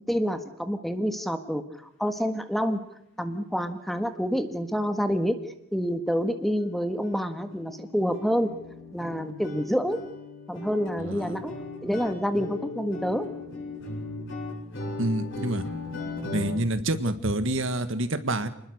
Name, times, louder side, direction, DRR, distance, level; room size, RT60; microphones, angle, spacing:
voice 1, 0.1-1.6 2.0-2.8 3.2-5.4 5.7-8.5 8.9-10.0 10.5-11.5 11.8-13.3, equal, ahead, 8 dB, 1.5 m, -27 dB
sound 1, 6.6-6.7 7.0-7.2 7.5-16.6, left 2 dB, 55° left, 7.8 m, -37 dB
voice 2, 11.0-11.4 15.0-15.6 16.3-18.5, right 1 dB, 60° right, 10 dB, 1.7 m, -27 dB
28.5 x 20.5 x 6.5 m, 0.77 s
head